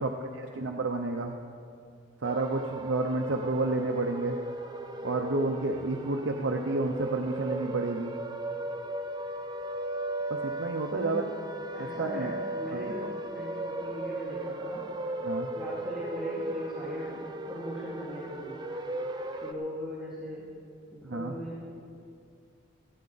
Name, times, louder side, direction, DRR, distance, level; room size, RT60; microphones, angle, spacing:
voice 1, 0.0-1.4 2.2-4.4 5.0-8.2 10.3-11.2 11.8-12.3 15.2-15.5 21.0-21.3, right 2 dB, 75° right, 3 dB, 0.8 m, -30 dB
sound 1, 2.2-19.5, right 1 dB, 20° right, 0.7 m, -36 dB
voice 2, 10.9-11.3 11.7-14.8 15.5-18.5 19.4-20.5 20.9-21.7, equal, 5° right, -10 dB, 2.4 m, -39 dB
17.5 x 15.0 x 4.1 m, 2.3 s
head